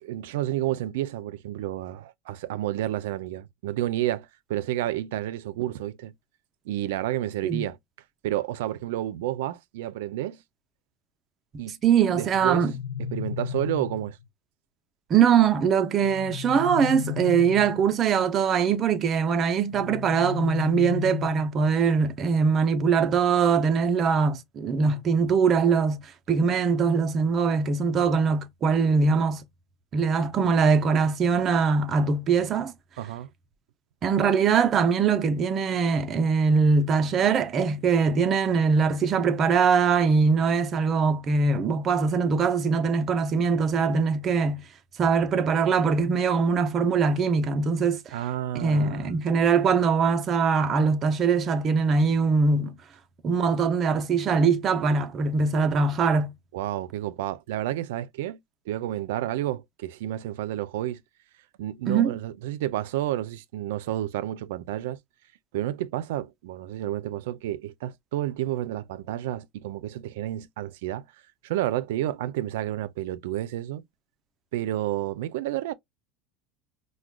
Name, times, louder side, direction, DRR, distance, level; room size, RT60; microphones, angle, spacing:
voice 1, 0.0-6.1 6.7-7.8 8.2-10.4 11.6-11.8 12.1-12.7 13.1-14.2 33.0-33.3 48.1-49.1 56.5-58.4 58.7-61.0 61.6-65.0 65.5-71.0 71.4-73.8 74.5-75.7, right 13 dB, 85° right, 0.4 m, -30 dB
voice 2, 11.8-12.7 15.1-26.0 26.3-29.4 29.9-32.7 34.0-44.6 45.0-48.1 48.6-52.7 53.2-56.3 61.9-62.2, right 5 dB, 25° right, 0.4 m, -22 dB
sound 1, 12.3-14.3 16.0-18.0 19.7-21.7, left 11 dB, 45° left, 0.4 m, -34 dB
4.8 x 2.1 x 2.2 m
cardioid pair, 175°, 0 cm